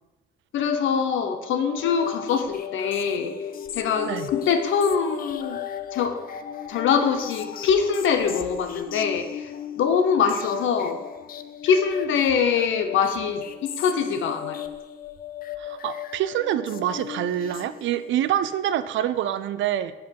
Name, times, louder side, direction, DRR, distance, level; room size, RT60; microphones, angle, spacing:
voice 1, 0.5-3.4 3.7-5.6 5.9-6.2 6.7-9.5 9.8-11.0 11.6-14.6, left 6 dB, 75° left, 0.8 m, -23 dB
sound 1, 1.8-18.2, left 9 dB, 45° left, 0.4 m, -36 dB
voice 2, 15.6-19.9, right 11 dB, 75° right, 0.4 m, -26 dB
5.4 x 4.9 x 4.6 m
cardioid pair, 90°, 20 cm